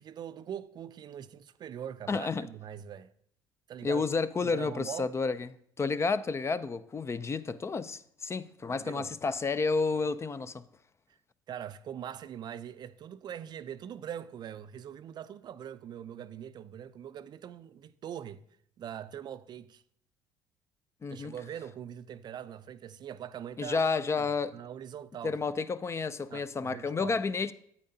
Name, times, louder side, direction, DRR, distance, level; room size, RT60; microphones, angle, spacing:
voice 1, 0.0-3.1 3.7-4.0 4.4-5.1 8.8-9.1 11.5-18.4 18.8-19.8 21.1-23.9 24.2-25.4 26.3-27.1, right 9 dB, 45° right, 0.4 m, -42 dB
voice 2, 2.1-2.5 3.8-5.5 5.8-10.6 21.0-21.3 23.6-24.5 25.2-27.5, left 4 dB, 30° left, 0.5 m, -31 dB
8.5 x 8.4 x 2.7 m
hypercardioid pair, 60°, 10 cm